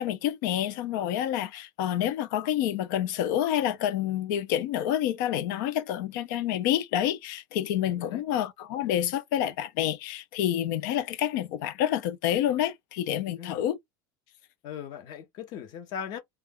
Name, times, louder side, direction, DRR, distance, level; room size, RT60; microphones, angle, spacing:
voice 1, 0.0-13.8, left 11 dB, 70° left, 0.5 m, -28 dB
voice 2, 7.8-8.2 13.4-13.6 14.6-16.2, left 8 dB, 45° left, 0.8 m, -39 dB
2.3 x 2.2 x 3.5 m
cardioid pair, 170°, 11 cm